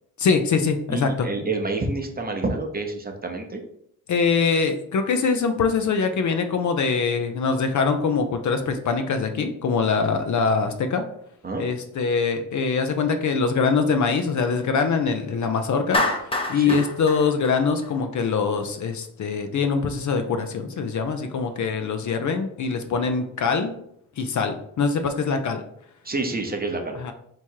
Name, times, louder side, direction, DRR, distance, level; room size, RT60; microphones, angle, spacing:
voice 1, 0.2-1.3 4.1-11.0 11.6-16.0 16.5-23.7 24.2-25.6 26.9-27.1, left 5 dB, 50° left, 7 dB, 0.6 m, -23 dB
voice 2, 0.9-3.6 11.4-11.6 16.5-16.8 26.0-27.0, right 3 dB, 25° right, 3 dB, 0.8 m, -28 dB
Clapping, 15.9-18.2, left 2 dB, 15° left, 0.7 m, -27 dB
3.5 x 3.0 x 4.5 m, 0.70 s
cardioid pair, 90°, 38 cm